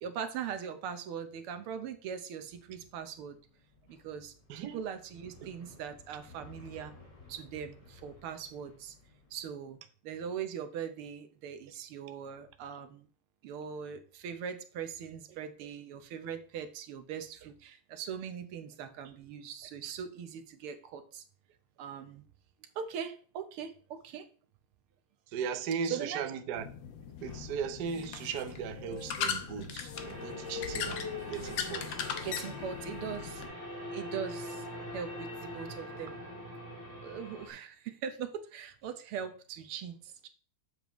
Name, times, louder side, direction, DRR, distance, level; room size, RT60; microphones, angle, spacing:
voice 1, 0.0-3.4 3.9-6.9 7.3-9.0 9.3-9.8 10.0-13.1 13.4-21.2 21.8-22.2 22.8-24.2 25.9-26.2 32.2-33.4 33.9-34.7 34.9-36.2 37.0-40.3, right 7 dB, 80° right, 1.7 m, -41 dB
sound 1, 2.4-9.4, left 3 dB, 45° left, 3.2 m, -57 dB
voice 2, 4.5-4.8 15.6-15.7 25.3-26.7 27.2-31.9, right 6 dB, 65° right, 1.1 m, -37 dB
sound 2, 26.6-33.5, left 7 dB, 65° left, 1.4 m, -38 dB
sound 3, 29.9-37.5, left 1 dB, 10° left, 2.7 m, -43 dB
7.8 x 7.0 x 3.0 m
omnidirectional pair, 2.4 m